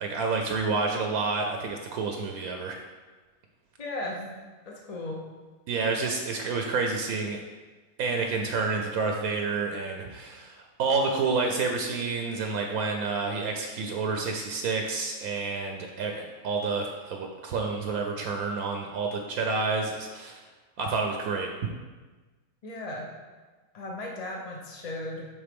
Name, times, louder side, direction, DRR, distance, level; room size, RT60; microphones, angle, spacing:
voice 1, 0.0-2.8 5.7-7.4 8.0-20.4 20.8-21.5, right 4 dB, 75° right, 3 dB, 1.1 m, -29 dB
voice 2, 3.8-4.3 4.7-5.2 22.6-23.1 23.7-25.2, left 1 dB, 40° left, -1 dB, 0.5 m, -36 dB
8.8 x 3.7 x 3.5 m, 1.3 s
omnidirectional pair, 1.6 m